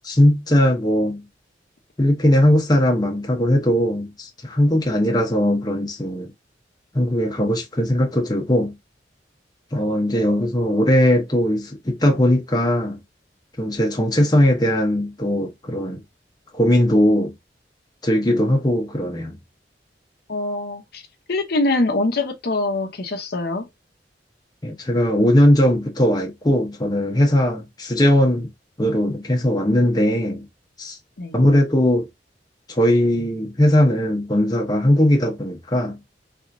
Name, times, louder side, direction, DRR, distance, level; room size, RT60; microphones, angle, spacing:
voice 1, 0.0-1.2 2.0-6.3 6.9-8.7 9.7-13.0 13.6-16.0 16.5-17.3 18.0-19.4 24.6-28.5 28.8-30.5 30.8-31.0 31.3-32.1 32.7-36.0, left 1 dB, 25° left, 0.9 m, -19 dB
voice 2, 20.3-21.0 21.3-23.7 31.2-31.4, left 2 dB, 60° left, 0.8 m, -23 dB
3.5 x 3.0 x 2.6 m
head